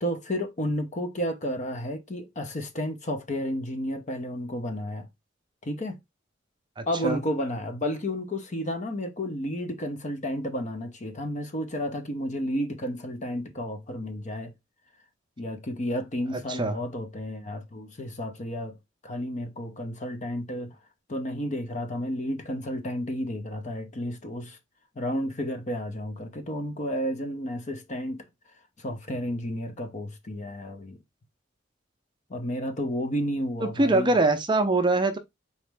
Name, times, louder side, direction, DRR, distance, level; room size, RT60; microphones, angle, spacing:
voice 1, 0.0-5.1 5.6-6.0 6.9-14.5 15.4-18.8 19.0-20.7 21.1-24.6 25.0-28.2 28.8-31.0 32.3-34.2, equal, 40° left, 0.7 m, -32 dB
voice 2, 6.8-7.2 16.3-16.7 33.6-35.2, right 2 dB, 25° right, 0.5 m, -23 dB
4.2 x 3.1 x 3.3 m
head